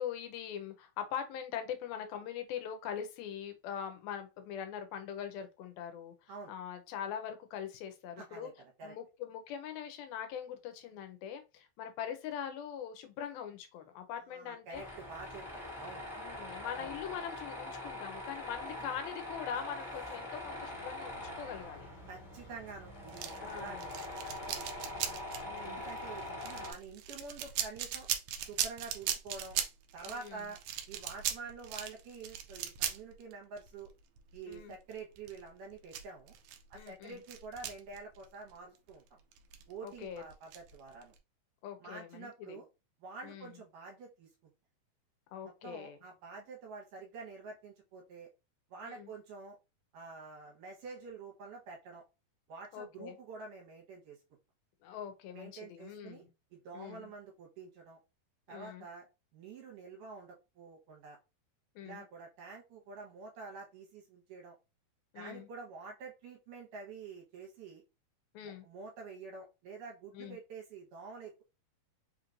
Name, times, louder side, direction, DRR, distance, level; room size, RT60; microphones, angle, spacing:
voice 1, 0.0-8.5 8.8-14.8 16.2-21.9 23.4-23.8 25.4-25.8 30.1-30.4 34.5-34.8 36.7-37.2 39.8-40.2 41.6-42.6 43.2-43.5 45.3-46.0 48.8-49.1 52.7-53.2 54.8-56.3 56.7-57.1 58.5-58.9 61.8-62.0 65.1-65.5 68.3-68.7 70.1-70.4, left 8 dB, 90° left, 2.5 m, -42 dB
voice 2, 8.2-8.9 14.3-16.0 16.8-16.9 22.1-25.0 25.6-28.1 28.5-29.6 29.9-30.6 30.9-33.9 34.3-36.4 36.7-39.2 39.7-41.2 41.8-42.7 43.0-44.3 45.4-48.3 48.7-49.6 49.9-52.0 52.5-54.2 55.3-56.2 56.5-58.0 58.5-59.1 59.3-61.2 61.8-64.6 65.2-67.8 68.4-71.4, right 4 dB, 70° right, 2.5 m, -48 dB
Tools, 14.7-26.7, left 1 dB, 15° left, 1.3 m, -43 dB
sound 1, 23.1-38.5 38.8-38.9 39.3-41.2, right 10 dB, 85° right, 1.9 m, -39 dB
5.6 x 3.0 x 2.5 m
omnidirectional pair, 4.2 m